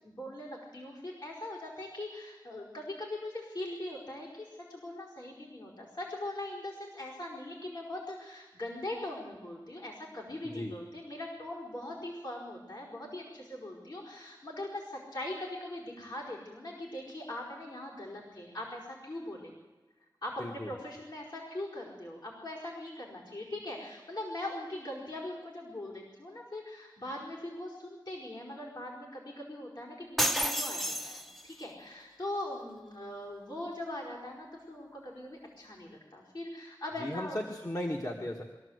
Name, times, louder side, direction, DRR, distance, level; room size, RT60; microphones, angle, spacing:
voice 1, 0.0-19.5 20.2-37.4, left 1 dB, 65° left, -5 dB, 4.8 m, -41 dB
voice 2, 20.4-20.7 37.0-38.4, left 1 dB, 40° left, 0 dB, 1.7 m, -36 dB
sound 1, 30.2-31.6, equal, ahead, 0.8 m, -31 dB
23.5 x 14.0 x 8.1 m, 1.2 s
wide cardioid pair, 50°, 8 cm